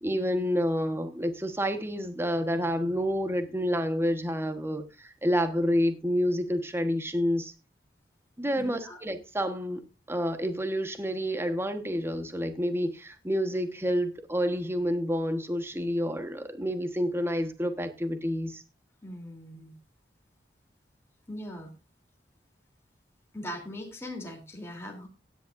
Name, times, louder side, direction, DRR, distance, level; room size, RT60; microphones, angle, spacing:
voice 1, 0.0-7.5 8.4-9.8 10.1-18.6, equal, 15° right, 1.3 m, -29 dB
voice 2, 8.5-9.0 19.0-19.8 21.3-21.7 23.3-25.1, left 1 dB, 15° left, 3.2 m, -40 dB
16.5 x 10.5 x 2.6 m
head